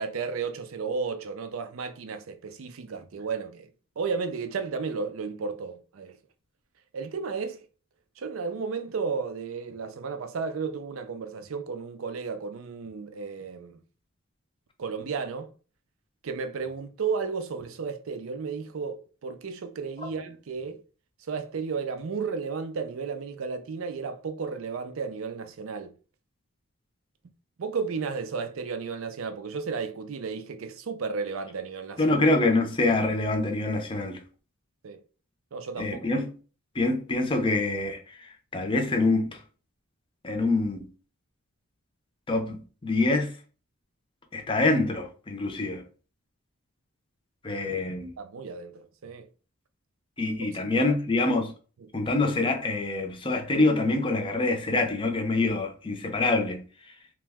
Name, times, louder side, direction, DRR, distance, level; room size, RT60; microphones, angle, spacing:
voice 1, 0.0-3.7 4.0-6.2 6.9-7.6 8.2-13.8 14.8-15.5 16.2-20.8 21.3-25.9 27.6-32.2 34.8-35.0 35.5-36.1 48.2-49.3 50.2-51.0, right 5 dB, 70° right, 0.4 m, -33 dB
voice 2, 32.0-34.2 35.8-36.3 36.7-39.4 40.2-40.9 42.3-43.3 44.3-45.8 47.4-48.1 50.2-51.5 51.9-56.6, left 2 dB, 25° left, 0.5 m, -25 dB
2.9 x 2.2 x 3.4 m
head